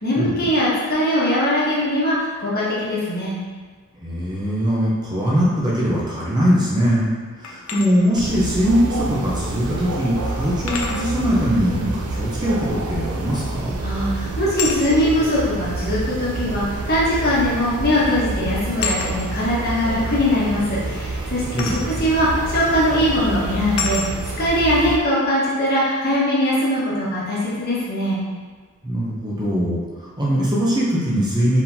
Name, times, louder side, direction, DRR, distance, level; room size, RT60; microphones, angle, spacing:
voice 1, 0.0-3.3 13.8-24.0 24.4-28.2, equal, 45° left, -8 dB, 1.3 m, -21 dB
voice 2, 4.0-7.1 7.4-13.7 21.5-22.0 28.8-31.6, equal, 20° right, -6 dB, 0.6 m, -21 dB
sound 1, 7.4-7.9 9.4-9.5 10.7-11.1 13.3-13.7 14.6-14.8 16.0-16.1 17.4-17.6 17.9-18.1 18.8-19.1 21.6-21.8 22.6-22.8 23.8-24.1, left 5 dB, 65° left, 0.5 m, -27 dB
sound 2, 8.2-25.0, right 2 dB, 85° right, 0.5 m, -28 dB
4.5 x 3.7 x 2.7 m, 1.4 s
head